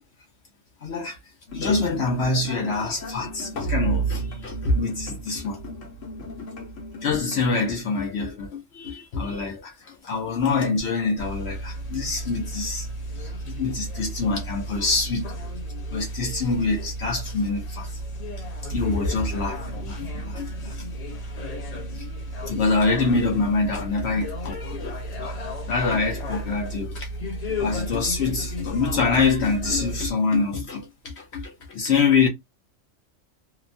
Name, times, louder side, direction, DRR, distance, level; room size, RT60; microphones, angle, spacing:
voice 1, 0.8-1.2 1.5-5.6 7.0-12.9 13.2-15.4 15.9-18.0 18.6-20.9 21.9-22.1 22.5-25.4 25.7-27.1 27.6-32.3, left 4 dB, 65° left, 0.9 m, -25 dB
sound 1, 1.5-7.7, right 4 dB, 85° left, 1.2 m, -32 dB
sound 2, 11.2-30.1, equal, 40° left, 0.7 m, -33 dB
2.9 x 2.2 x 2.5 m
omnidirectional pair, 1.3 m